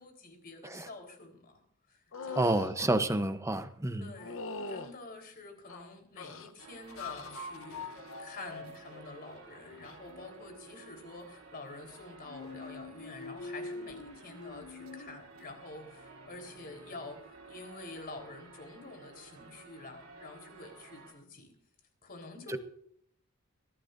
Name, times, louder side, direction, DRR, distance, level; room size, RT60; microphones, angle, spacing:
voice 1, 0.0-1.6 1.9-2.6 4.0-4.4 4.7-21.5 22.0-22.6, left 2 dB, 45° left, 4 dB, 4.1 m, -48 dB
sound 1, 2.1-2.7 4.2-4.9 5.7-6.5 7.0-7.4 7.8-8.2 9.8-10.0, left 3 dB, 70° left, 1.0 m, -42 dB
voice 2, 2.4-4.1, right 1 dB, 15° right, 10 dB, 0.9 m, -29 dB
sound 2, 6.6-21.1, right 4 dB, 75° right, 3.3 m, -53 dB
sound 3, 6.9-10.3 12.2-17.1, left 3 dB, 85° left, 1.8 m, -46 dB
22.0 x 15.5 x 2.7 m, 0.65 s
head